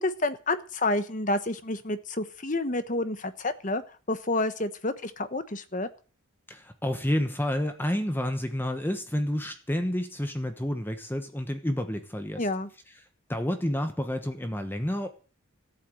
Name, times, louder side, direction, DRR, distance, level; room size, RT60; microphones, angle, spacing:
voice 1, 0.0-3.8 4.1-5.9 12.4-12.7, left 2 dB, 35° left, 11 dB, 1.1 m, -29 dB
voice 2, 6.5-12.5 13.3-15.1, equal, 10° left, 7 dB, 1.1 m, -29 dB
14.5 x 8.9 x 7.8 m, 0.38 s
head